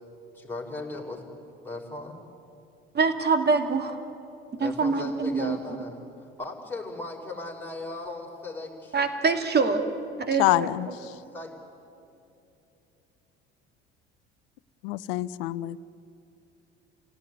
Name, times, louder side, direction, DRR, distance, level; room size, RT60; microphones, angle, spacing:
voice 1, 0.3-1.2 1.6-2.2 4.6-9.0 10.9-11.5, left 2 dB, 5° left, -1 dB, 5.0 m, -37 dB
voice 2, 2.9-4.0 4.6-5.6 8.9-9.8 10.2-11.0, right 4 dB, 30° right, 7 dB, 2.6 m, -25 dB
voice 3, 10.4-10.9 14.8-15.8, left 18 dB, 65° left, 18 dB, 0.7 m, -25 dB
28.5 x 17.0 x 9.6 m, 2.8 s
hypercardioid pair, 60°, 31 cm